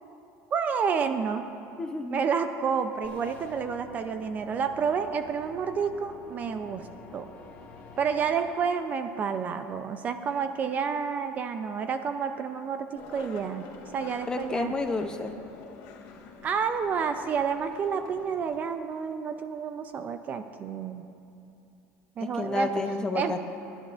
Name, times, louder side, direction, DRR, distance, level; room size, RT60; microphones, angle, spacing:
voice 1, 0.5-1.4 2.1-6.9 7.1-7.3 8.0-13.6 13.9-14.7 16.4-21.0 22.2-22.7 23.1-23.4, right 6 dB, 30° right, 8 dB, 0.5 m, -29 dB
voice 2, 1.8-2.3 14.3-15.3 22.2-23.4, left 3 dB, 15° left, 6 dB, 0.6 m, -30 dB
sound 1, 3.0-8.4, left 3 dB, 30° left, 1.7 m, -48 dB
Skateboard, 12.9-18.6, left 4 dB, 65° left, 1.5 m, -47 dB
27.5 x 11.0 x 2.5 m, 2.7 s
cardioid pair, 160°, 5 cm